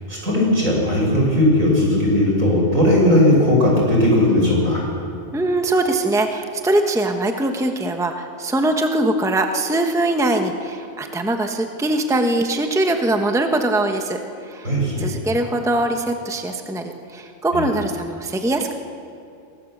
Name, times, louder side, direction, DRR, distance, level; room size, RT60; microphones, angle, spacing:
voice 1, 0.1-4.8 14.6-15.1 17.5-17.6, left 1 dB, 80° right, -2 dB, 6.5 m, -17 dB
voice 2, 5.3-18.7, right 1 dB, 5° right, 5 dB, 1.1 m, -22 dB
23.0 x 18.0 x 7.4 m, 2.5 s
omnidirectional pair, 1.4 m